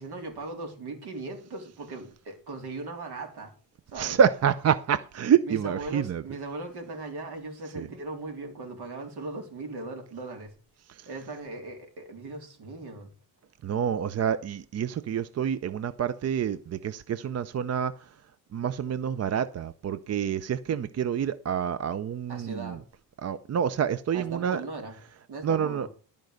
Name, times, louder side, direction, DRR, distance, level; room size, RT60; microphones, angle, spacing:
voice 1, 0.0-3.5 3.9-4.2 5.4-10.5 11.1-13.1 22.3-22.8 24.1-24.9 25.3-25.9, right 3 dB, 60° right, 3.7 m, -38 dB
voice 2, 3.9-6.2 7.7-7.9 13.6-17.9 18.5-22.8 23.2-24.6 25.4-25.9, right 8 dB, 35° right, 0.6 m, -27 dB
13.0 x 5.2 x 6.5 m
cardioid pair, 115°, 43 cm